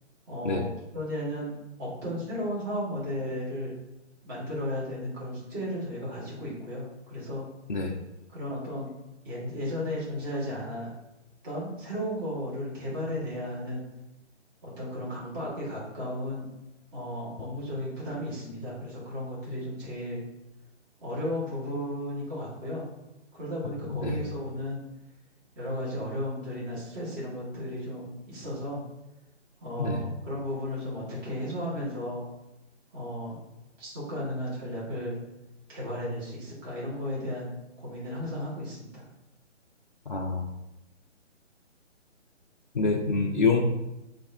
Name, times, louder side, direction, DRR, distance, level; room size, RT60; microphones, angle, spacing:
voice 1, 0.3-0.7 0.9-1.5 1.8-3.7 4.2-7.4 8.3-8.9 9.2-10.9 11.4-13.8 14.6-16.5 16.9-20.2 21.0-22.8 23.3-24.8 25.6-28.8 29.6-32.2 32.9-33.4 33.8-35.1 35.7-37.5 37.8-39.0, equal, 20° right, -7 dB, 1.2 m, -34 dB
voice 2, 40.1-40.5 42.7-43.6, left 4 dB, 45° left, -1 dB, 0.4 m, -26 dB
6.6 x 2.5 x 2.6 m, 0.97 s
figure-of-eight pair, 140°, 36 cm